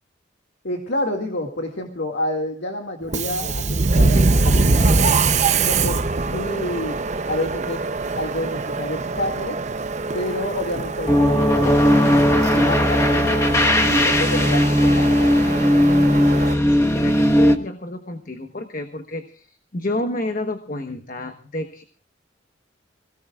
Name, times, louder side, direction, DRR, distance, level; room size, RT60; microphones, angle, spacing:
voice 1, 0.6-5.1 5.5-6.0 6.3-7.0 7.2-7.8 8.2-9.6 10.1-15.6, left 1 dB, 70° left, 1 dB, 2.1 m, -29 dB
Subway metro underground, 3.0-16.5, right 3 dB, 40° right, 0.7 m, -23 dB
sound 1, 11.1-17.6, left 1 dB, 15° left, 1.3 m, -17 dB
voice 2, 16.7-21.8, left 1 dB, 45° left, 6 dB, 1.2 m, -30 dB
26.0 x 17.5 x 2.4 m, 0.43 s
head